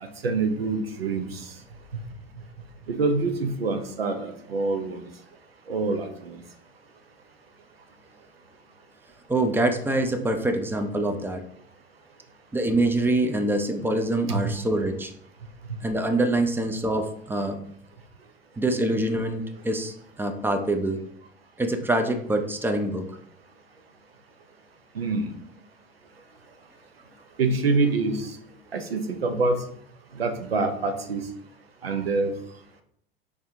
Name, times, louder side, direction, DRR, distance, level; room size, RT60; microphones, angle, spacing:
voice 1, 0.0-1.5 1.9-2.0 2.9-5.0 5.7-6.4 14.3-14.5 15.7-15.8 24.9-25.3 27.4-28.4 28.7-29.6 30.1-31.2 31.8-32.3, right 3 dB, 85° right, 7 dB, 0.6 m, -26 dB
voice 2, 9.3-11.4 12.5-15.1 15.8-17.6 18.6-21.0 21.6-23.1, right 1 dB, 5° right, 4 dB, 0.4 m, -25 dB
4.7 x 3.3 x 2.7 m, 0.65 s
figure-of-eight pair, 80°, 29 cm